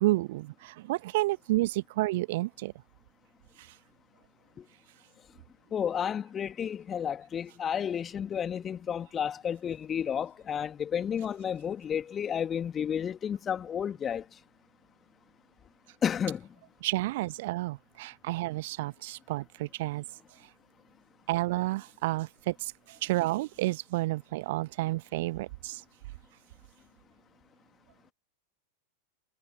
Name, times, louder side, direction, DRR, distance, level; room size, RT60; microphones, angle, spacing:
voice 1, 0.0-2.7 3.6-3.7 16.8-20.0 21.3-25.8, right 19 dB, 50° right, 1.3 m, -30 dB
voice 2, 5.7-14.2 16.0-16.5, left 8 dB, 25° left, 2.2 m, -31 dB
figure-of-eight pair, 90°, 0 cm